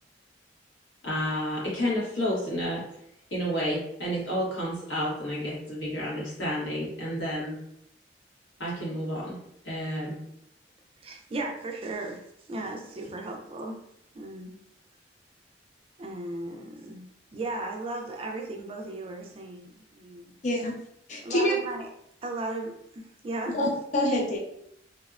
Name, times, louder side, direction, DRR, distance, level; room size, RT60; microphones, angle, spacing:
voice 1, 1.0-2.9 3.3-7.6 8.6-9.4 9.6-10.2, equal, 90° left, -6 dB, 1.2 m, -30 dB
voice 2, 11.0-12.2 12.5-13.8 14.1-14.6 16.0-20.3 21.2-21.9 22.2-23.6, right 2 dB, 30° right, 2 dB, 0.4 m, -36 dB
voice 3, 20.4-20.7 21.1-21.5 23.5-24.4, left 1 dB, 40° left, -3 dB, 0.4 m, -26 dB
2.7 x 2.1 x 2.4 m, 0.74 s
head